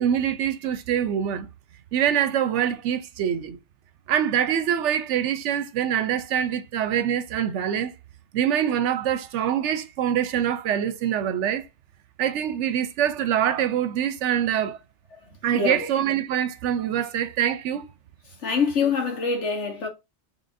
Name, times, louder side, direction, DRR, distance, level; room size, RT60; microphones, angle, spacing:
voice 1, 0.0-1.5 1.9-3.6 4.1-7.9 8.3-11.7 12.2-14.8 15.4-17.8, right 9 dB, 80° right, 0.9 m, -24 dB
voice 2, 15.5-15.9 18.4-19.9, left 5 dB, 75° left, 1.6 m, -25 dB
3.7 x 3.3 x 2.6 m
omnidirectional pair, 1.2 m